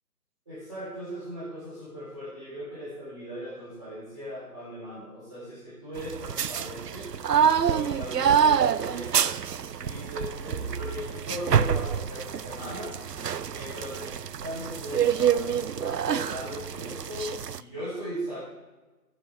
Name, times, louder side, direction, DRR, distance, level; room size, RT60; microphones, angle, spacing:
voice 1, 0.5-7.1 7.6-9.3 9.7-13.1 13.5-18.4, equal, 20° right, -13 dB, 3.7 m, -38 dB
sound 1, 6.0-17.6, right 8 dB, 80° right, 0.6 m, -27 dB
19.5 x 7.2 x 3.5 m, 1.2 s
figure-of-eight pair, 170°, 48 cm